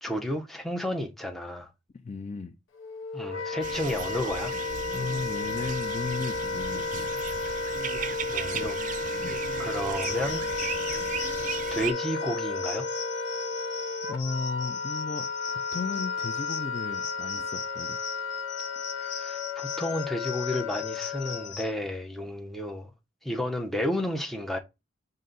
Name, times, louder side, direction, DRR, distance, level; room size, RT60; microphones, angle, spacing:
voice 1, 0.0-1.7 3.1-4.5 8.3-8.8 9.6-10.4 11.7-12.9 19.0-22.9 23.2-24.6, left 1 dB, ahead, 0.7 m, -32 dB
voice 2, 1.9-2.6 3.3-3.4 4.9-7.1 8.5-8.7 9.2-9.4 14.1-18.0, left 4 dB, 35° left, 0.4 m, -35 dB
Wind instrument woodwind instrument, 2.8-21.6, left 4 dB, 85° left, 0.7 m, -33 dB
sound 1, 3.6-11.9, right 7 dB, 45° right, 0.4 m, -37 dB
sound 2, 10.0-21.7, left 6 dB, 65° left, 0.9 m, -40 dB
5.4 x 2.6 x 3.8 m
head